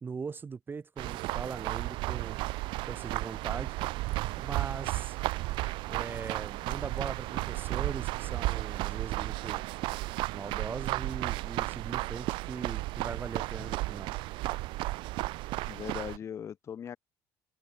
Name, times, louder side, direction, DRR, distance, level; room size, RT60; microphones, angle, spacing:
voice 1, 0.0-2.4 2.9-3.8 4.3-5.2 5.9-9.6 10.3-14.1, right 5 dB, 25° right, 1.0 m, -40 dB
sound 1, 1.0-16.2, right 20 dB, 75° right, 0.5 m, -34 dB
voice 2, 15.7-17.0, left 8 dB, 35° left, 0.4 m, -39 dB
open air
cardioid pair, 120°, 8 cm